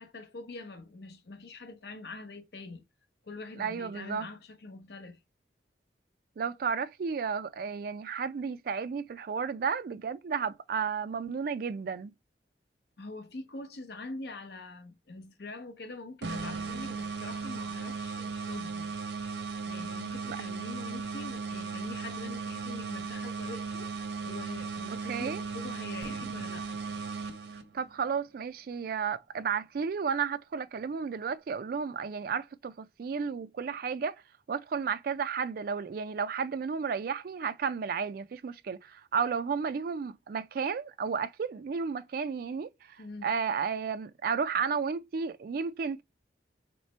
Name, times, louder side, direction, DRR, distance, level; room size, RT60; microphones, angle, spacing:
voice 1, 0.0-2.8 3.2-5.2 13.0-18.9 19.7-23.9 24.2-26.8 43.0-43.4, left 3 dB, 60° left, 0.7 m, -44 dB
voice 2, 3.6-4.3 6.4-12.1 20.2-20.4 25.1-25.4 27.7-34.2 34.5-43.0 43.2-46.0, right 6 dB, 55° right, 0.3 m, -33 dB
sound 1, 16.2-27.9, right 5 dB, 75° right, 0.9 m, -37 dB
Fireworks, 26.0-29.9, equal, 5° right, 0.7 m, -52 dB
3.2 x 3.0 x 4.2 m
head